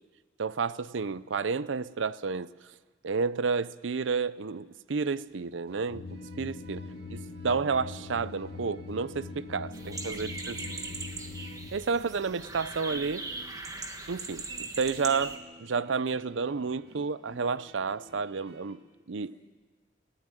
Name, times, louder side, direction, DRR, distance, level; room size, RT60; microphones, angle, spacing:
voice 1, 0.4-2.5 3.0-6.8 7.4-10.6 11.7-13.3 14.1-18.8 19.1-19.4, right 5 dB, 85° right, 0.6 m, -31 dB
sound 1, 5.1-18.8, right 1 dB, 55° right, 2.3 m, -54 dB
sound 2, 5.9-11.7, left 3 dB, 55° left, 1.1 m, -42 dB
voice 2, 6.7-7.2 9.6-11.1 11.9-12.3 14.5-14.7 19.3-19.4, left 1 dB, 15° left, 6.8 m, -56 dB
sound 3, 9.7-15.4, right 3 dB, 20° right, 1.4 m, -39 dB
20.5 x 16.0 x 9.1 m
head